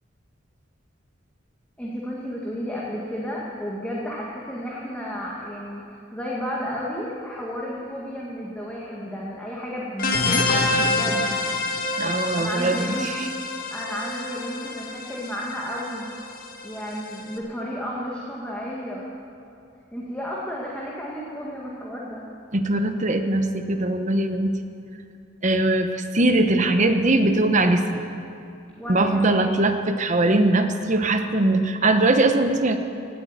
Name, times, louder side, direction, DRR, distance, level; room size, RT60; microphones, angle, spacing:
voice 1, 1.8-11.4 12.3-13.3 13.7-16.1 16.6-19.1 19.9-22.2 28.8-29.5, equal, 5° left, -5 dB, 1.8 m, -32 dB
sound 1, 10.0-17.3, left 2 dB, 50° left, 1.5 m, -27 dB
voice 2, 12.0-13.1 22.5-24.6 25.4-28.0 28.9-32.8, right 2 dB, 40° right, 8 dB, 1.0 m, -21 dB
17.5 x 8.5 x 9.0 m, 2.6 s
head